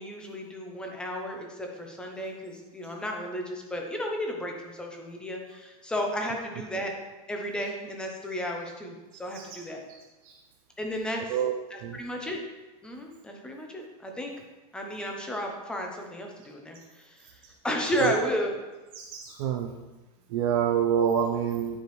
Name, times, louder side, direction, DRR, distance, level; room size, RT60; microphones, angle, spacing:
voice 1, 0.0-6.9 7.3-9.8 10.8-11.4 11.7-12.4 12.8-14.3 14.7-17.4 17.6-18.5, equal, 5° left, 1 dB, 0.6 m, -33 dB
voice 2, 17.9-18.3 19.0-19.7 20.3-21.8, right 8 dB, 55° right, 1 dB, 0.7 m, -27 dB
9.4 x 4.9 x 3.2 m, 1.1 s
supercardioid pair, 165°, 21 cm